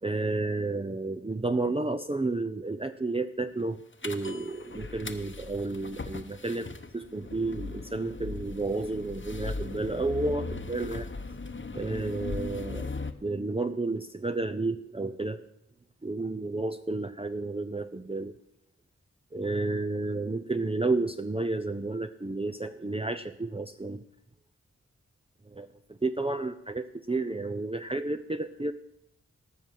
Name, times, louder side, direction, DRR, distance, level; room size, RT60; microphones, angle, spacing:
voice 1, 0.0-6.7 6.9-11.1 11.7-12.9 13.2-15.4 16.0-18.4 19.3-24.0 25.5-28.7, right 2 dB, 20° right, 8 dB, 0.6 m, -31 dB
sound 1, 4.0-13.1, left 3 dB, 40° left, 1.0 m, -38 dB
18.5 x 6.3 x 7.5 m, 0.76 s
wide cardioid pair, 65°, 30 cm